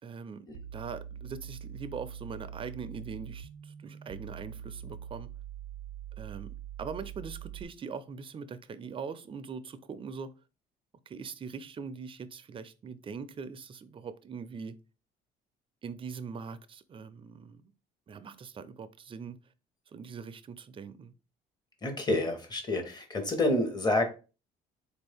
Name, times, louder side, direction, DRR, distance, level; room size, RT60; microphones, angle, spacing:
voice 1, 0.0-0.5 0.7-5.3 6.2-10.3 11.1-14.7 15.8-17.6 18.1-19.4 19.9-21.1, right 5 dB, 30° right, 0.4 m, -42 dB
sound 1, 0.5-7.6, right 9 dB, 85° right, 0.5 m, -44 dB
voice 2, 21.8-24.0, left 2 dB, 25° left, 1.1 m, -28 dB
4.1 x 2.6 x 3.4 m
cardioid pair, 110°, 17 cm